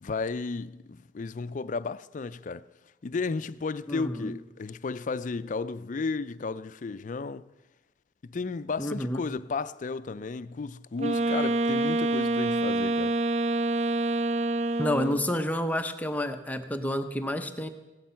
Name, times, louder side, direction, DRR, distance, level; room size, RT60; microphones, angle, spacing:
voice 1, 0.0-2.7 3.0-7.5 8.2-13.2, left 4 dB, 45° left, 0.4 m, -33 dB
voice 2, 3.9-4.3 8.8-9.2 14.8-17.7, left 1 dB, 10° left, 0.7 m, -29 dB
Wind instrument woodwind instrument, 11.0-15.3, right 2 dB, 40° right, 0.4 m, -26 dB
17.0 x 12.0 x 5.7 m
head